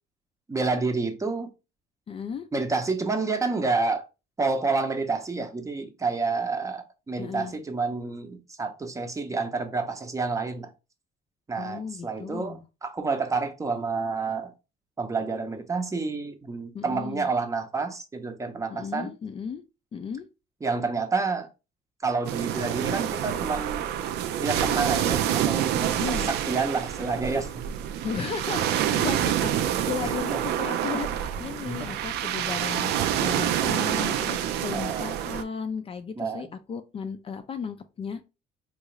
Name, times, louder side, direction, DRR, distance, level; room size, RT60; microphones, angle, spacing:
voice 1, 0.5-1.5 2.5-4.0 4.4-10.7 11.5-14.5 15.0-19.1 20.6-21.5 22.0-23.9 24.4-26.0 26.3-27.5 30.0-30.4 31.7-31.9 34.7-35.1 36.2-36.4, right 4 dB, 20° right, 0.6 m, -29 dB
voice 2, 2.1-2.5 7.2-7.5 11.6-12.6 16.7-17.3 18.7-19.6 19.9-20.3 26.0-26.3 28.0-38.2, left 6 dB, 35° left, 0.4 m, -35 dB
sound 1, 22.2-35.4, right 10 dB, 75° right, 0.4 m, -27 dB
3.6 x 2.4 x 3.0 m
cardioid pair, 110°, 17 cm